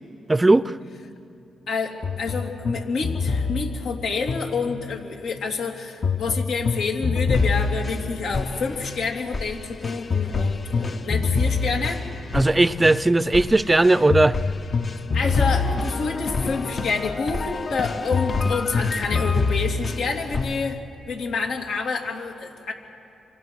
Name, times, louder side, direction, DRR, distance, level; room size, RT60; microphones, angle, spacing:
voice 1, 0.3-0.8 12.3-14.4, right 2 dB, 20° right, 17 dB, 0.7 m, -17 dB
voice 2, 1.7-12.0 14.0-14.1 15.1-20.8 21.1-22.7, left 4 dB, 80° left, 1 dB, 3.3 m, -28 dB
sound 1, 2.0-5.1 6.0-20.7, left 4 dB, 45° left, 1.3 m, -26 dB
29.5 x 25.0 x 6.4 m, 2.7 s
supercardioid pair, 55°, 0 cm